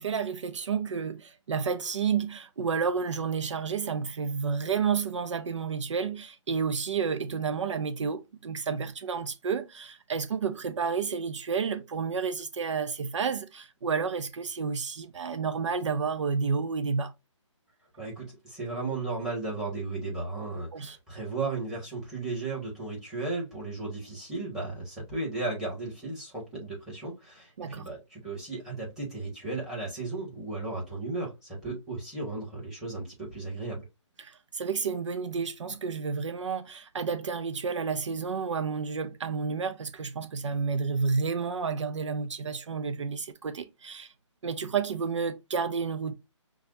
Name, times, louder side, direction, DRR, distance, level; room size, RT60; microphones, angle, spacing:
voice 1, 0.0-17.1 20.7-21.0 27.6-27.9 34.2-44.1 44.4-46.1, right 5 dB, 65° right, 0.6 m, -30 dB
voice 2, 18.0-33.8, right 3 dB, 5° right, 1.6 m, -35 dB
5.7 x 2.3 x 2.6 m
hypercardioid pair, 155°, 16 cm